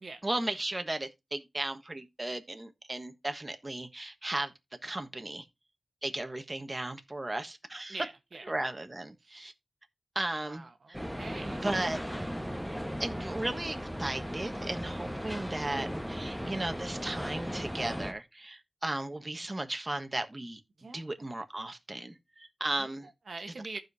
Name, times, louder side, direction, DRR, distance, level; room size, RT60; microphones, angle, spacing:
voice 1, 0.2-4.5 4.8-5.4 6.0-8.0 8.5-9.5 10.1-11.0 11.4-12.0 13.0-20.6 20.9-23.1, right 2 dB, 30° right, 1.2 m, -36 dB
voice 2, 7.9-8.4 9.2-9.4 10.4-12.0 20.8-21.0 22.8-22.9 23.3-23.8, right 3 dB, 75° right, 1.1 m, -44 dB
sound 1, 10.9-18.1, equal, ahead, 1.1 m, -37 dB
14.5 x 5.2 x 2.6 m
cardioid pair, 45°, 0 cm